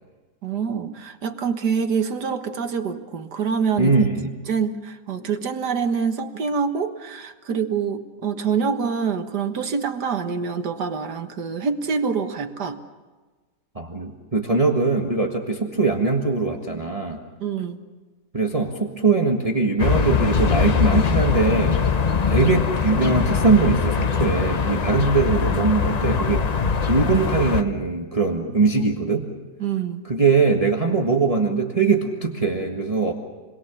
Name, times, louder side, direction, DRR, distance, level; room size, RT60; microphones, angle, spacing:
voice 1, 0.4-3.9 4.5-12.8 17.4-17.8 29.6-30.0, right 6 dB, 70° right, 6 dB, 2.0 m, -26 dB
voice 2, 3.8-4.3 13.7-17.2 18.3-21.8 22.3-26.5 26.9-29.3 30.0-33.1, right 4 dB, 20° right, 2 dB, 1.6 m, -21 dB
sound 1, 19.8-27.6, left 6 dB, 45° left, 0.5 m, -22 dB
28.5 x 21.5 x 7.0 m, 1.3 s
omnidirectional pair, 1.8 m